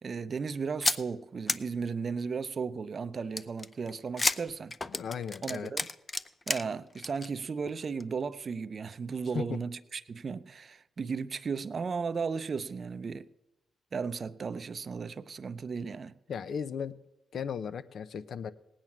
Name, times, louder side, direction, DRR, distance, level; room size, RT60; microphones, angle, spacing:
voice 1, 0.0-4.7 5.4-5.9 6.5-13.3 13.9-16.1, right 5 dB, 50° right, 0.6 m, -35 dB
sound 1, 0.8-1.0 1.5-1.6 3.4-6.6 6.9-7.3 7.7-7.8 8.0-8.1, left 3 dB, 30° left, 0.6 m, -30 dB
voice 2, 4.9-5.7 9.3-9.6 16.3-16.9 17.3-18.5, left 7 dB, 65° left, 0.7 m, -36 dB
18.5 x 8.8 x 6.0 m
cardioid pair, 65°, 0 cm